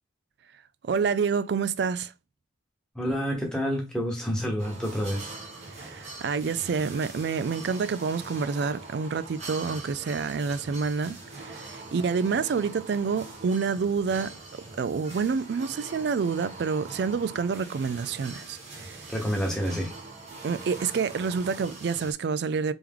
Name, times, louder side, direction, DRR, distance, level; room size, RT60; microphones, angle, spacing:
voice 1, 0.8-2.1 5.8-14.4 14.8-19.0 20.4-22.7, right 5 dB, 55° right, 0.3 m, -28 dB
voice 2, 2.9-5.3 19.1-19.9, equal, 5° left, 1.1 m, -28 dB
sound 1, 4.6-22.1, right 3 dB, 35° right, 1.2 m, -43 dB
3.5 x 3.0 x 3.5 m
head